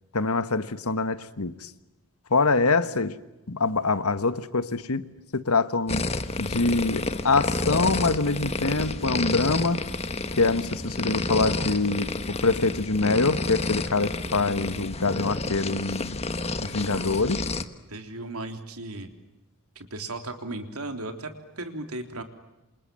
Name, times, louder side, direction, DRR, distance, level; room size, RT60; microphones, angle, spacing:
voice 1, 0.1-1.7 2.3-3.2 3.5-6.0 6.4-9.8 10.4-16.2 16.6-17.4, left 3 dB, 75° left, 12 dB, 1.5 m, -25 dB
sound 1, 5.9-17.6, left 3 dB, 30° left, 1.4 m, -30 dB
voice 2, 16.6-17.2 17.9-19.1 19.8-22.2, right 2 dB, 80° right, 6 dB, 3.5 m, -36 dB
28.5 x 27.5 x 7.7 m, 1.0 s
head